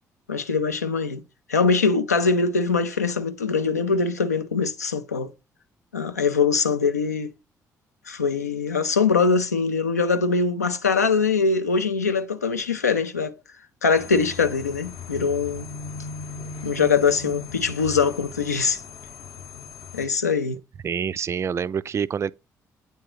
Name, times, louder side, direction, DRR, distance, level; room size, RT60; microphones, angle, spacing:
voice 1, 0.3-1.2 1.5-5.3 5.9-7.3 8.1-13.3 13.8-15.7 16.6-18.8 19.9-20.6, left 5 dB, 85° left, 0.4 m, -22 dB
sound 1, 13.9-20.1, left 4 dB, 55° left, 0.7 m, -38 dB
voice 2, 20.8-22.3, right 7 dB, 35° right, 0.3 m, -26 dB
9.0 x 3.6 x 3.0 m
figure-of-eight pair, 45°, 9 cm